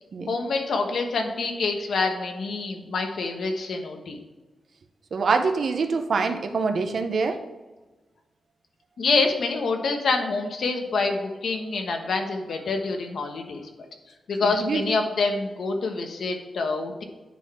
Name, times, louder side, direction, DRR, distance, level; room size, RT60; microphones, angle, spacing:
voice 1, 0.3-4.2 9.0-13.6 14.3-17.0, left 3 dB, 70° left, 4 dB, 1.1 m, -26 dB
voice 2, 5.1-7.4 14.4-14.8, right 4 dB, 55° right, 6 dB, 0.7 m, -25 dB
9.9 x 4.1 x 4.3 m, 1.2 s
wide cardioid pair, 175°, 0 cm